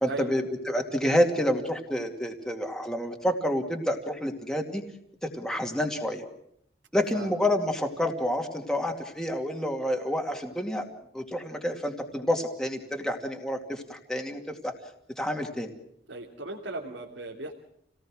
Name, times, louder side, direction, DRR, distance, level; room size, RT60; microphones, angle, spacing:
voice 1, 0.0-4.8 5.2-6.2 6.9-10.9 11.1-14.7 15.2-15.7, equal, 5° left, 3 dB, 2.4 m, -28 dB
voice 2, 16.1-17.5, right 2 dB, 85° right, 0 dB, 2.9 m, -36 dB
28.5 x 18.5 x 6.3 m, 0.75 s
head